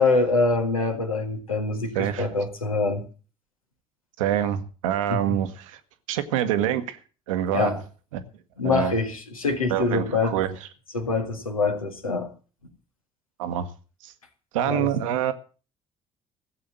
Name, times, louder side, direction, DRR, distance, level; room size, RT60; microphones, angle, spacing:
voice 1, 0.0-3.0 5.1-5.2 7.5-7.8 8.6-10.4 10.9-12.3 14.7-14.9, left 3 dB, 85° left, 1.7 m, -24 dB
voice 2, 1.9-2.3 4.2-5.8 6.1-7.0 7.3-7.8 8.1-8.2 8.6-8.9 9.7-10.7 13.4-13.7 14.0-14.1 14.5-15.3, right 11 dB, 70° right, 1.2 m, -26 dB
16.0 x 7.7 x 7.5 m
figure-of-eight pair, 45°, 17 cm